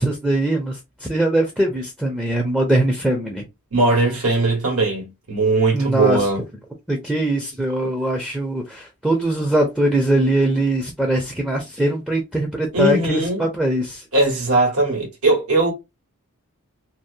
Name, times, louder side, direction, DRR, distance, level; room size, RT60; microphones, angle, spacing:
voice 1, 0.0-3.4 5.7-6.3 6.9-14.0, right 1 dB, 5° right, 0.4 m, -21 dB
voice 2, 3.7-6.4 12.7-13.5 14.1-15.7, right 2 dB, 90° right, 1.3 m, -19 dB
2.7 x 2.0 x 2.4 m
head